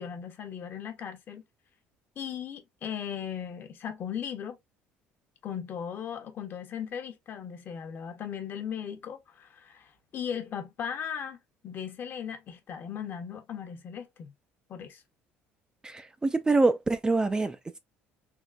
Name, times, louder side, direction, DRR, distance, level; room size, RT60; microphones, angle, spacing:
voice 1, 0.0-1.4 2.2-4.6 5.4-11.4 11.6-14.3 14.7-15.0, left 8 dB, 50° left, 0.8 m, -37 dB
voice 2, 15.8-17.8, right 3 dB, 15° right, 0.4 m, -25 dB
3.6 x 2.4 x 2.3 m
supercardioid pair, 95°, 5 cm